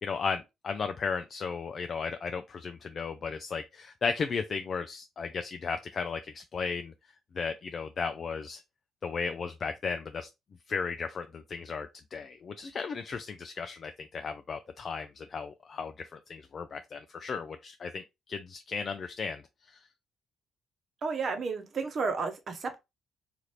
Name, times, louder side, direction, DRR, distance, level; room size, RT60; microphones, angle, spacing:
voice 1, 0.0-6.9 7.3-8.6 9.0-10.3 10.7-18.0 18.3-19.4 19.7-19.8, left 5 dB, 50° left, 0.3 m, -35 dB
voice 2, 21.0-22.8, right 4 dB, 50° right, 0.8 m, -32 dB
2.8 x 2.5 x 3.2 m
supercardioid pair, 60°, 0 cm